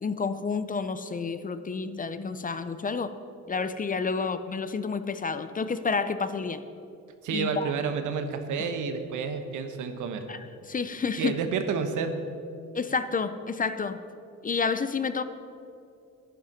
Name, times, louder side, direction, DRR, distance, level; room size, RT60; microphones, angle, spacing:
voice 1, 0.0-3.1 3.5-6.6 7.3-7.7 10.3-11.4 12.7-14.0 14.4-15.2, left 5 dB, 30° left, 11 dB, 0.6 m, -30 dB
voice 2, 7.2-10.2 11.2-12.2, right 6 dB, 80° right, 7 dB, 1.1 m, -30 dB
10.5 x 9.5 x 5.9 m, 2.6 s
cardioid pair, 90°, 30 cm